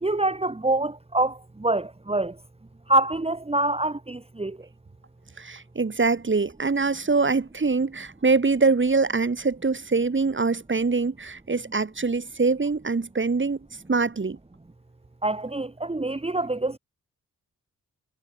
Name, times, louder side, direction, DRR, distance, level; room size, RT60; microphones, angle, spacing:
voice 1, 0.0-2.4 2.9-4.6 15.2-16.8, right 2 dB, 15° right, 1.7 m, -25 dB
voice 2, 5.4-13.6 13.9-14.4, right 4 dB, 35° right, 2.4 m, -24 dB
supercardioid pair, 45°, 35 cm